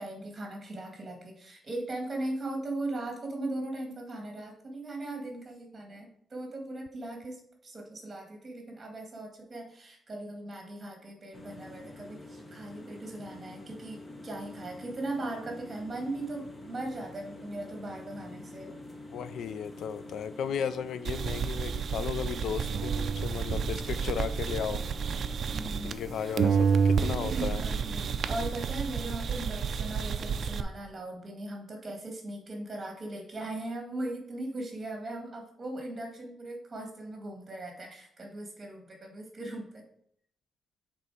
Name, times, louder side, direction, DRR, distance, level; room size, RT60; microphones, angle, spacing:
voice 1, 0.0-18.7 25.5-26.4 27.4-39.8, right 2 dB, 25° right, 2 dB, 1.9 m, -39 dB
sound 1, 11.3-28.5, left 1 dB, 20° left, 0.9 m, -46 dB
voice 2, 19.1-24.8 25.8-27.6, left 7 dB, 75° left, 13 dB, 0.3 m, -35 dB
sound 2, 21.0-26.1 26.4-30.6, right 6 dB, 45° right, 0.4 m, -30 dB
6.8 x 3.8 x 4.8 m, 0.66 s
wide cardioid pair, 160°, 0 cm